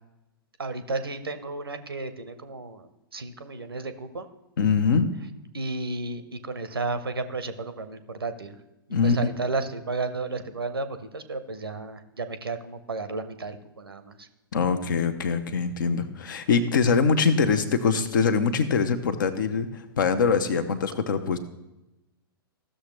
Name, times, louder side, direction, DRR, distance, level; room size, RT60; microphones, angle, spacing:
voice 1, 0.6-4.3 5.5-8.5 9.0-14.2, right 3 dB, 75° right, 10 dB, 0.8 m, -33 dB
voice 2, 4.6-5.1 8.9-9.2 14.5-21.4, left 5 dB, 55° left, 10 dB, 0.8 m, -23 dB
15.0 x 6.6 x 3.0 m, 0.96 s
figure-of-eight pair, 105°, 12 cm